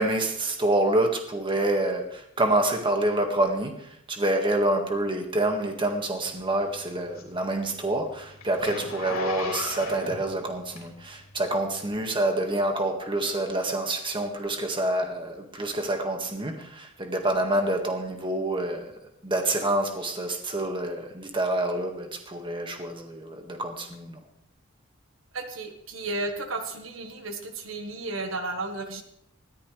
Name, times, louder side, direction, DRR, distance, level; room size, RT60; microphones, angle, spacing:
voice 1, 0.0-18.9 19.2-24.2, right 1 dB, 25° right, 3 dB, 1.9 m, -27 dB
Zipper (clothing), 6.3-11.2 11.8-11.9, left 3 dB, 80° left, 3.4 m, -36 dB
voice 2, 25.3-29.0, right 2 dB, 70° right, 5 dB, 1.5 m, -33 dB
20.0 x 14.5 x 3.4 m, 0.72 s
head